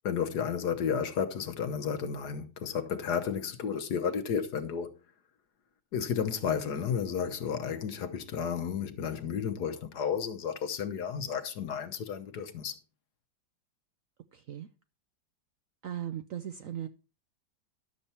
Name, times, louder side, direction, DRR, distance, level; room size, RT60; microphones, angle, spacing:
voice 1, 0.0-5.0 5.9-12.8, left 7 dB, 65° left, 1.4 m, -32 dB
voice 2, 14.3-14.7 15.8-16.9, right 10 dB, 65° right, 0.8 m, -38 dB
12.0 x 6.9 x 4.3 m
omnidirectional pair, 2.0 m